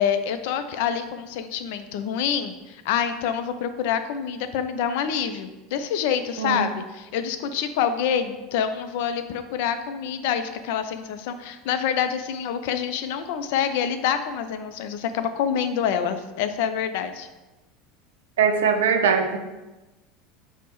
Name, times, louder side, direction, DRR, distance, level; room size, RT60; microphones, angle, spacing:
voice 1, 0.0-17.3, left 8 dB, 70° left, 9 dB, 0.3 m, -26 dB
voice 2, 18.4-19.4, right 6 dB, 80° right, 6 dB, 0.4 m, -21 dB
5.9 x 2.0 x 3.0 m, 1.1 s
hypercardioid pair, 85°, 0 cm